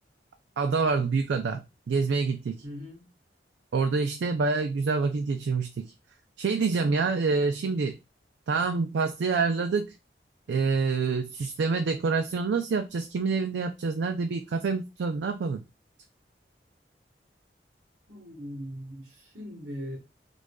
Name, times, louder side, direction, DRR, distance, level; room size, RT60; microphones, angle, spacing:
voice 1, 0.6-2.6 3.7-5.9 6.4-8.0 8.5-9.9 10.5-15.6, right 4 dB, 90° right, 5 dB, 0.4 m, -27 dB
voice 2, 2.6-3.1 18.1-20.0, equal, 55° right, -1 dB, 1.0 m, -40 dB
4.7 x 2.4 x 2.2 m, 0.25 s
head